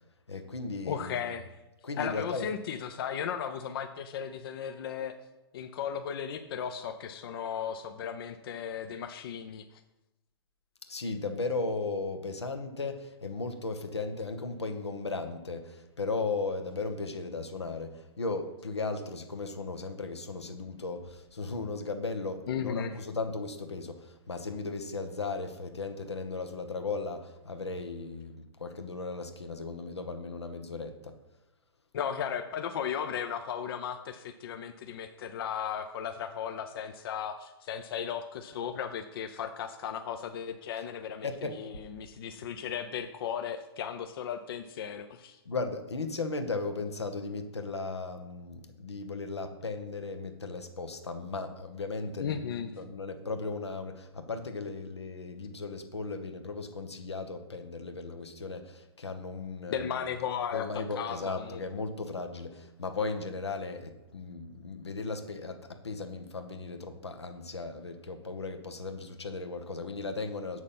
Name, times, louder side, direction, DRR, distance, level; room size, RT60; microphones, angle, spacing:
voice 1, 0.3-1.3 1.8-2.5 10.9-31.1 41.2-41.6 45.4-59.9 60.5-70.6, left 3 dB, 90° left, 6 dB, 1.0 m, -36 dB
voice 2, 0.9-1.6 2.0-5.2 5.5-9.8 22.5-22.9 31.9-45.4 52.2-52.8 59.7-61.6, left 8 dB, 60° left, 8 dB, 0.6 m, -36 dB
7.2 x 6.3 x 5.5 m, 0.96 s
hypercardioid pair, 115°, 14 cm